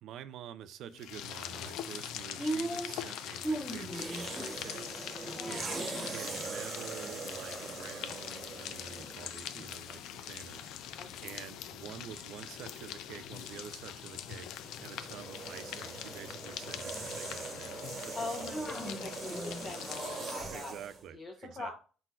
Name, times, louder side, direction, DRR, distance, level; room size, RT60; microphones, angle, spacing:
voice 1, 0.0-5.8 6.1-18.7 20.5-21.7, right 9 dB, 75° right, 0.4 m, -48 dB
sound 1, 0.9-20.6, left 10 dB, 80° left, 0.4 m, -43 dB
sound 2, 1.4-8.6 9.0-10.0 10.2-19.8, right 1 dB, 5° left, 1.0 m, -43 dB
sound 3, 3.8-9.4 10.2-10.4 14.3-21.0, right 4 dB, 40° right, 1.0 m, -43 dB
voice 2, 5.3-6.2 11.0-11.4 18.1-20.7 21.1-21.7, left 3 dB, 40° left, 0.8 m, -43 dB
4.4 x 4.0 x 2.3 m
cardioid pair, 110°, 0 cm